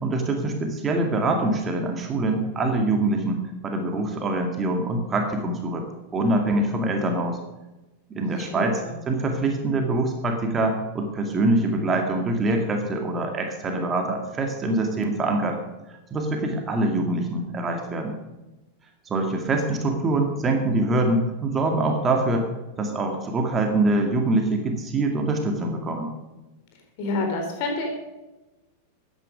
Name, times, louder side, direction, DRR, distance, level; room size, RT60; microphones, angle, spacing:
voice 1, 0.0-5.8 6.1-7.4 8.2-8.8 9.1-15.6 16.1-18.1 19.1-22.5 22.8-26.1, right 2 dB, 20° right, 3 dB, 2.2 m, -24 dB
voice 2, 8.5-8.9 27.0-27.9, left 3 dB, 45° left, 2 dB, 4.0 m, -28 dB
15.0 x 10.0 x 5.2 m, 1.0 s
figure-of-eight pair, 90°, 0 cm